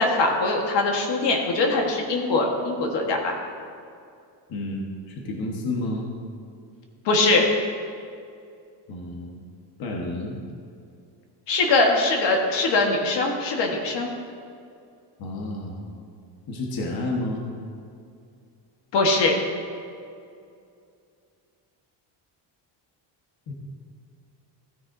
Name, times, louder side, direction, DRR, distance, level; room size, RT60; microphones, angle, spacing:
voice 1, 0.0-3.4 7.0-7.5 11.5-14.1 18.9-19.3, left 3 dB, 70° left, 1 dB, 1.5 m, -22 dB
voice 2, 4.5-6.1 8.9-9.4 9.8-10.4 15.2-15.9 16.5-17.4 23.5-23.6, left 2 dB, 55° left, 0 dB, 1.4 m, -30 dB
15.5 x 9.9 x 2.7 m, 2.4 s
cardioid pair, 150°, 44 cm